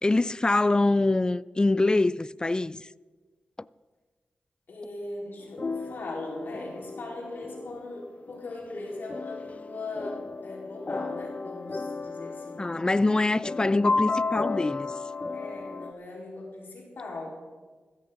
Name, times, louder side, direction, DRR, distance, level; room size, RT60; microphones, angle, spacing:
voice 1, 0.0-2.9 12.6-14.9, left 2 dB, 25° left, 0.3 m, -24 dB
voice 2, 4.7-12.6 15.3-17.4, left 2 dB, 70° left, 4.4 m, -39 dB
sound 1, 5.4-15.9, left 3 dB, 40° left, 0.8 m, -34 dB
15.5 x 14.0 x 3.9 m
cardioid pair, 55°, 4 cm